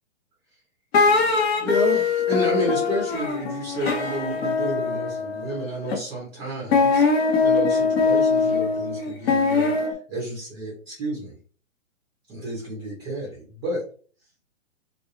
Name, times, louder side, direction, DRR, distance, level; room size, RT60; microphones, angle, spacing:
sound 1, 0.9-6.0 6.7-9.9, left 4 dB, 50° left, 0.8 m, -22 dB
voice 1, 1.0-11.4 12.3-13.8, right 1 dB, 15° right, -5 dB, 0.6 m, -31 dB
2.4 x 2.3 x 2.9 m, 0.43 s
hypercardioid pair, 150°, 40 cm